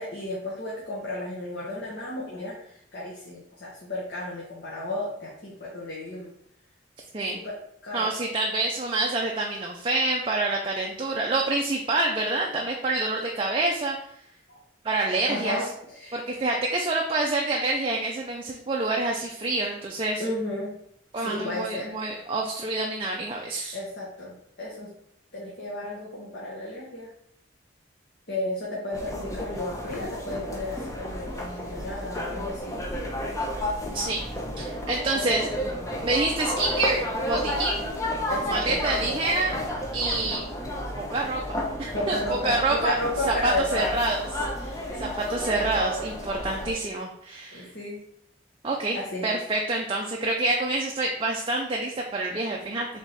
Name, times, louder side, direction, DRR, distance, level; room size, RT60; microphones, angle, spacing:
voice 1, 0.0-6.3 7.3-7.6 7.8-8.2 14.5-14.6 15.2-16.2 20.2-20.7 21.2-22.0 23.7-24.9 25.3-27.1 28.3-32.8 38.3-38.8 41.9-44.0 44.9-45.1 47.5-48.0 48.9-49.3, left 1 dB, 55° left, -6 dB, 1.0 m, -33 dB
voice 2, 7.9-14.0 14.8-15.6 16.1-20.2 21.1-23.8 33.9-34.3 34.6-35.5 36.0-37.9 38.5-39.5 39.9-40.4 41.0-42.2 42.4-43.0 43.3-44.3 44.5-44.8 45.3-47.7 48.6-49.0 49.2-52.9, right 2 dB, 25° right, 0 dB, 0.4 m, -27 dB
sound 1, 28.9-46.7, left 1 dB, 15° left, 0.6 m, -32 dB
3.6 x 3.3 x 4.0 m, 0.71 s
head